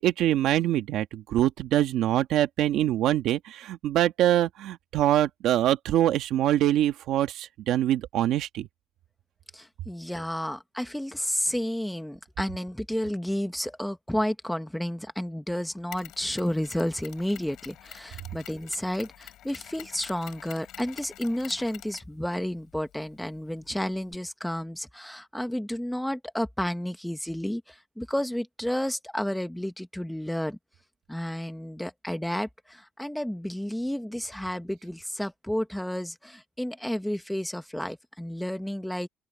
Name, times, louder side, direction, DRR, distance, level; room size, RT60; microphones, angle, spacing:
voice 1, 0.0-8.7, right 12 dB, 65° right, 1.6 m, -24 dB
voice 2, 9.5-30.6 31.1-39.1, equal, ahead, 1.3 m, -31 dB
Mechanisms, 15.9-24.2, left 13 dB, 60° left, 6.5 m, -48 dB
open air
cardioid pair, 170°, 0 cm